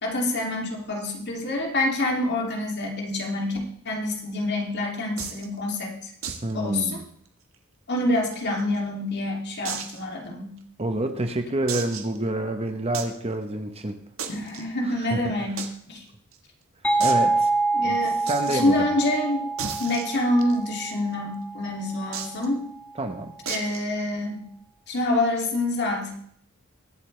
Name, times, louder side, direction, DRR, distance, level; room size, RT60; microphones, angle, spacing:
voice 1, 0.0-3.6 3.8-6.1 6.5-7.0 7.9-10.5 14.3-15.6 15.9-16.0 17.7-18.2 18.5-19.5 19.8-22.7 23.5-24.5 24.9-26.1, left 1 dB, 55° left, 0 dB, 2.7 m, -26 dB
sound 1, 5.2-5.5 6.2-6.5 6.8-6.9 7.3-7.4 8.0-8.8 9.6-10.0 10.6-10.7 11.7-12.2 12.9-13.2 14.2-14.6 15.6-15.7 16.0-16.1 16.3-16.4 17.0-17.2 18.3-18.6 19.6-20.7 22.1-22.5 23.5-23.8, right 7 dB, 75° right, 1.5 m, -34 dB
voice 2, 6.4-7.0 10.8-14.0 14.9-15.3 17.0-17.5 17.8-18.0 18.2-18.9 23.0-23.3, right 1 dB, 30° right, 7 dB, 1.0 m, -28 dB
sound 2, 16.8-22.3, right 3 dB, 5° left, 1.4 m, -26 dB
22.0 x 8.4 x 3.3 m, 0.64 s
head